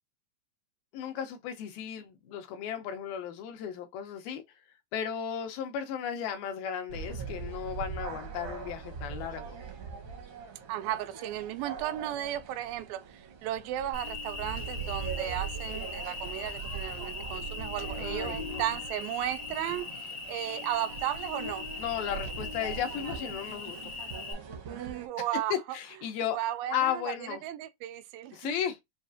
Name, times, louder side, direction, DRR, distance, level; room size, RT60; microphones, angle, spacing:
voice 1, 0.9-4.4 4.9-9.6 18.0-18.7 21.8-23.9 25.5-26.4 26.7-27.4 28.3-28.8, left 9 dB, 90° left, 2.7 m, -35 dB
sound 1, 6.9-25.1, right 6 dB, 70° right, 1.3 m, -41 dB
voice 2, 10.7-19.9 20.3-21.7 24.7-25.5 26.3-28.5, right 13 dB, 85° right, 2.4 m, -35 dB
Cricket, 13.9-24.3, left 4 dB, 40° right, 0.5 m, -40 dB
6.3 x 2.4 x 2.5 m
omnidirectional pair, 4.1 m